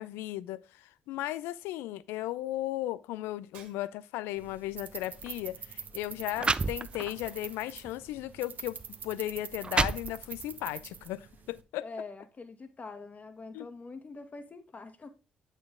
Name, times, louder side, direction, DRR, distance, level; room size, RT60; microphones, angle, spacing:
voice 1, 0.0-11.9 13.5-13.7, left 15 dB, 70° left, 0.4 m, -36 dB
Shatter, 3.5-4.3, right 6 dB, 75° right, 1.8 m, -56 dB
sound 1, 4.4-11.6, right 6 dB, 50° right, 1.0 m, -45 dB
sound 2, 5.1-5.3 6.0-6.1 6.4-7.3 7.8-8.0 8.8-8.9 9.4-10.5, right 3 dB, 25° right, 0.5 m, -30 dB
voice 2, 11.8-15.1, left 3 dB, 40° left, 1.6 m, -44 dB
8.5 x 6.5 x 3.7 m
hypercardioid pair, 45°, 4 cm